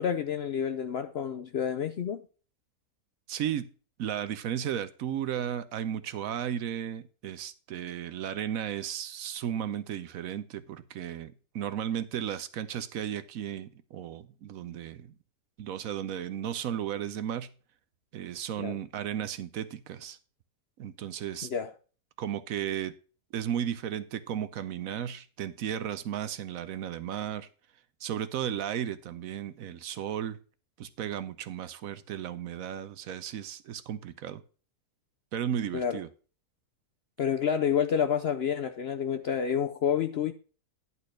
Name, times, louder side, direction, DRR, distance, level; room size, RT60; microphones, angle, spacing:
voice 1, 0.0-2.2 18.6-18.7 21.4-21.7 35.7-36.0 37.2-40.3, left 8 dB, 60° left, 0.6 m, -29 dB
voice 2, 3.3-3.7 4.0-15.1 15.6-17.5 18.1-20.2 20.8-21.5 22.2-22.9 23.3-27.5 28.0-30.4 30.8-34.4 35.3-36.1, right 9 dB, 70° right, 1.0 m, -34 dB
11.0 x 4.2 x 6.3 m
omnidirectional pair, 1.6 m